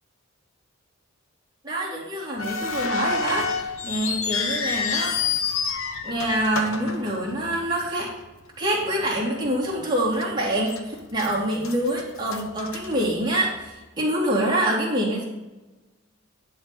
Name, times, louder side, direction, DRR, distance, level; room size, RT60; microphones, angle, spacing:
voice 1, 1.6-5.2 6.0-8.1 8.6-15.2, right 1 dB, 20° right, -4 dB, 2.6 m, -26 dB
sound 1, 2.4-7.7 8.0-8.1 8.8-9.0 9.5-9.6 10.2-10.8 11.1-13.6, left 5 dB, 70° left, 1.1 m, -29 dB
11.0 x 4.2 x 6.9 m, 1.1 s
head